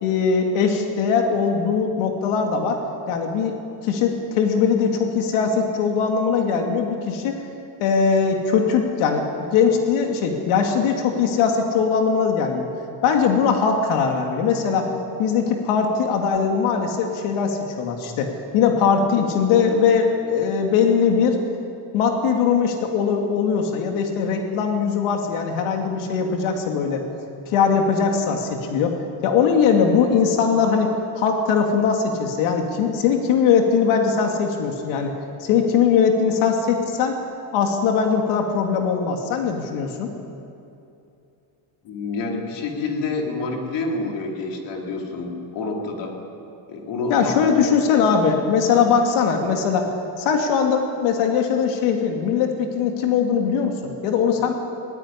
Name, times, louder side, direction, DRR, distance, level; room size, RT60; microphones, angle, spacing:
voice 1, 0.0-2.8 3.1-3.5 3.8-7.4 7.8-12.7 13.0-14.9 15.2-21.4 21.9-27.0 27.5-35.1 35.4-37.2 37.5-40.1 47.1-49.9 50.2-54.5, left 6 dB, 80° left, 3 dB, 2.5 m, -20 dB
voice 2, 41.8-46.2 46.7-47.6 47.9-48.1, left 3 dB, 60° left, 1 dB, 3.9 m, -28 dB
19.5 x 18.5 x 9.7 m, 2.7 s
cardioid pair, 155°, 49 cm